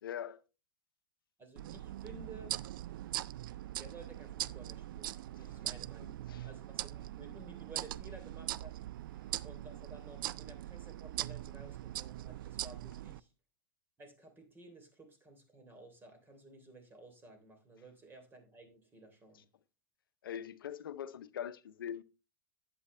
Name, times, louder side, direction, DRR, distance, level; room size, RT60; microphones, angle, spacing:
voice 1, 0.0-0.4 6.3-6.5 20.2-22.0, left 9 dB, 85° left, 0.7 m, -42 dB
voice 2, 1.4-2.6 3.8-8.8 9.4-13.3 14.0-19.5, right 2 dB, 20° right, 3.4 m, -54 dB
sound 1, 1.6-13.2, right 14 dB, 75° right, 0.4 m, -42 dB
11.0 x 7.9 x 3.3 m
hypercardioid pair, 110°, 11 cm